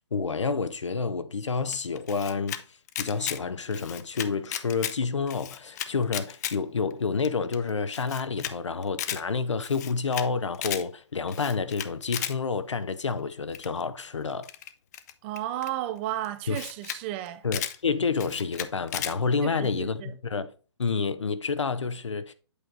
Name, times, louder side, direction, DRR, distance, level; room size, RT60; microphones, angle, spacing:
voice 1, 0.0-2.6 3.0-14.5 16.5-16.6 17.4-20.5 20.8-22.3, left 5 dB, 85° left, 0.8 m, -29 dB
Camera, 1.7-2.6 2.9-3.4 3.7-5.0 5.3-6.6 6.9-7.0 7.2-7.3 7.5-7.6 7.9-8.5 8.8-9.2 9.6-10.3 10.5-10.8 11.3-12.3 13.5-13.8 14.4-15.7 16.2-16.3 16.5-17.0 17.3-17.8 18.2-19.1, left 11 dB, 35° left, 0.6 m, -34 dB
voice 2, 15.2-17.4 19.4-20.1, right 13 dB, 25° right, 0.5 m, -33 dB
8.3 x 4.5 x 3.8 m
hypercardioid pair, 140°, 15 cm